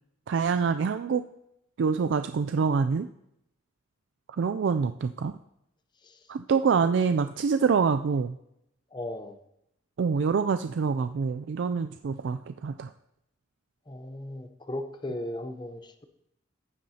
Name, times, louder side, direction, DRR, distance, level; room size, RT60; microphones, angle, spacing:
voice 1, 0.3-1.3 1.8-3.1 4.3-5.4 6.3-8.4 10.0-12.9, right 5 dB, 60° right, 9 dB, 0.3 m, -26 dB
voice 2, 8.9-9.4 13.9-16.0, left 1 dB, 20° left, 7 dB, 0.7 m, -37 dB
14.5 x 10.5 x 2.8 m, 0.81 s
head